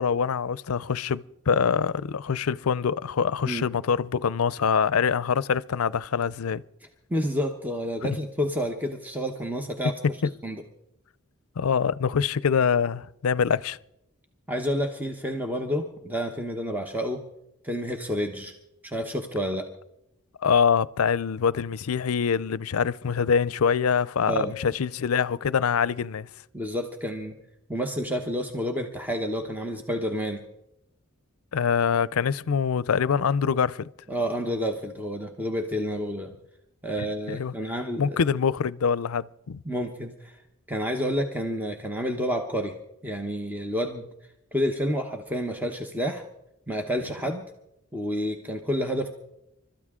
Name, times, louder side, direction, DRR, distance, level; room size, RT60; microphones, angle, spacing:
voice 1, 0.0-6.6 8.0-8.2 11.6-13.8 20.4-26.3 31.5-33.9 37.0-37.5 38.0-39.6, left 6 dB, 85° left, 0.5 m, -24 dB
voice 2, 7.1-9.9 10.4-10.6 14.5-17.2 17.6-18.5 18.8-19.7 24.3-24.5 26.5-27.4 27.7-30.4 34.1-36.3 36.8-38.2 39.6-40.4 40.7-42.7 43.0-44.1 44.5-46.2 46.7-47.4 47.9-49.1, equal, 10° right, 0.9 m, -29 dB
29.5 x 13.0 x 3.7 m
head